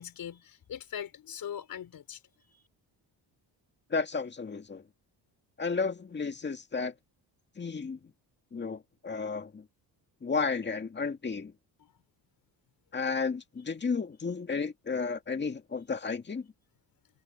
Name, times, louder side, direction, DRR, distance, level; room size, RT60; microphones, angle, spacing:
voice 1, 0.0-2.2 2.5-2.6 11.8-11.9, left 9 dB, 55° left, 4.7 m, -41 dB
voice 2, 3.9-4.8 5.6-6.9 7.6-8.0 8.5-9.6 10.2-11.5 12.9-16.5, left 4 dB, 25° left, 2.1 m, -32 dB
cardioid pair, 135°, 41 cm